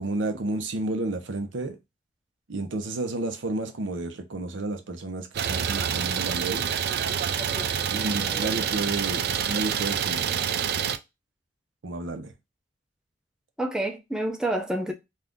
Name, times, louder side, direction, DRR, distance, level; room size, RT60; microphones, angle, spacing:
voice 1, 0.0-1.8 2.5-6.7 7.9-10.7 11.8-12.3, right 2 dB, 90° right, 0.7 m, -31 dB
Idling, 5.3-11.0, right 8 dB, 55° right, 0.3 m, -27 dB
voice 2, 7.4-8.7 13.6-14.9, right 1 dB, 5° right, 0.5 m, -31 dB
2.6 x 2.4 x 3.4 m
head